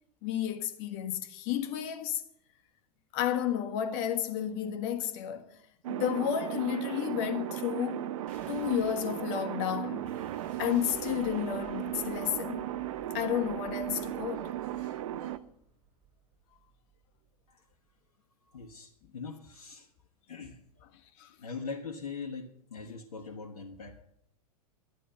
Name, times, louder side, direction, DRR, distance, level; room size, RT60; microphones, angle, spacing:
voice 1, 0.2-2.2 3.1-5.6 5.9-8.1 8.5-10.1 10.6-12.6 13.1-14.5 21.2-21.3, left 10 dB, 45° left, 1.4 m, -32 dB
sound 1, 5.8-15.4, right 13 dB, 55° right, 0.7 m, -36 dB
sound 2, 8.3-17.5, right 5 dB, 40° right, 5.0 m, -54 dB
voice 2, 18.5-19.9 20.3-20.6 21.4-24.0, left 4 dB, 70° left, 1.5 m, -42 dB
12.0 x 9.9 x 6.8 m
figure-of-eight pair, 95°, 20 cm